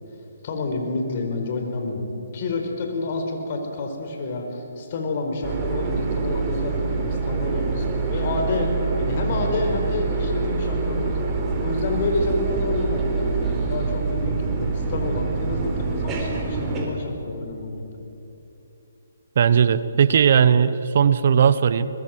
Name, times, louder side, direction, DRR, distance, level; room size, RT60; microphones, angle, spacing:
voice 1, 0.4-8.7 9.0-11.2 11.6-17.8, left 3 dB, 45° left, 3 dB, 4.8 m, -29 dB
sound 1, 5.4-16.9, right 4 dB, 20° right, 3.9 m, -25 dB
voice 2, 19.4-21.9, right 7 dB, 55° right, 15 dB, 0.9 m, -17 dB
23.0 x 21.0 x 7.8 m, 2.9 s
hypercardioid pair, 145°, 0 cm